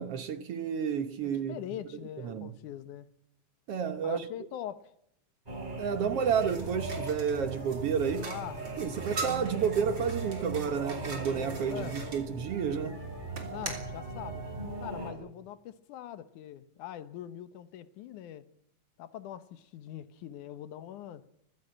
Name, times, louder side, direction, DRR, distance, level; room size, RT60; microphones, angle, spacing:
voice 1, 0.0-1.6 2.2-2.5 3.7-4.3 5.8-8.3 8.8-13.1, right 7 dB, 60° right, 1.8 m, -31 dB
voice 2, 1.2-3.1 4.0-4.9 8.3-8.8 11.7-12.0 13.5-14.4 14.8-18.5 19.0-21.3, left 11 dB, 90° left, 2.6 m, -42 dB
sound 1, 5.5-15.1, right 2 dB, 15° right, 4.4 m, -39 dB
sound 2, 6.2-12.2 13.3-13.9, right 3 dB, 40° right, 3.9 m, -43 dB
23.0 x 16.0 x 8.9 m
omnidirectional pair, 3.4 m